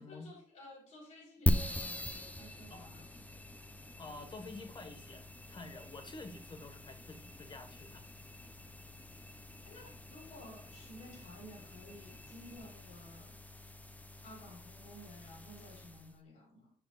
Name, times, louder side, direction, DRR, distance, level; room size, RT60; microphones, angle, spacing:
voice 1, 0.0-3.1 9.6-13.4 14.2-16.7, left 1 dB, 80° left, 4.0 m, -53 dB
sound 1, 1.5-16.2, left 1 dB, 15° left, 0.8 m, -41 dB
voice 2, 4.0-8.3, left 3 dB, 40° left, 1.6 m, -49 dB
8.9 x 7.3 x 2.5 m
cardioid pair, 75°, 12 cm